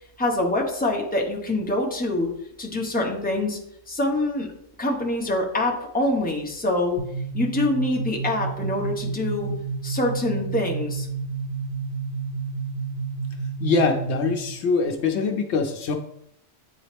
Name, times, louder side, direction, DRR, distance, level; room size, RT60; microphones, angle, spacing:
voice 1, 0.2-2.3 2.6-3.6 3.9-4.5 4.8-7.0 7.3-9.5 9.8-11.1, left 2 dB, 10° left, -1 dB, 1.0 m, -25 dB
sound 1, 7.0-14.5, right 5 dB, 85° right, 2.3 m, -30 dB
voice 2, 13.6-16.0, left 4 dB, 70° left, 5 dB, 0.9 m, -23 dB
8.9 x 3.9 x 3.4 m, 0.73 s
omnidirectional pair, 1.2 m